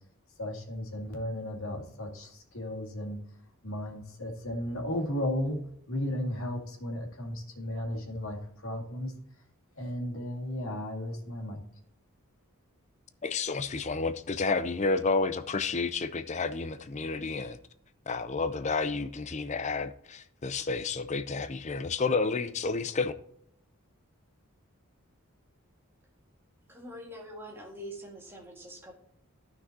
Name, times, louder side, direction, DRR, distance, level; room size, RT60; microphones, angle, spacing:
voice 1, 0.4-3.2 3.6-9.1 9.8-11.6, left 1 dB, 75° left, 2.0 m, -35 dB
voice 2, 13.2-17.6 18.1-23.1, left 4 dB, 35° left, 0.5 m, -30 dB
voice 3, 26.7-28.9, equal, 10° right, 1.8 m, -44 dB
13.5 x 6.0 x 2.8 m
head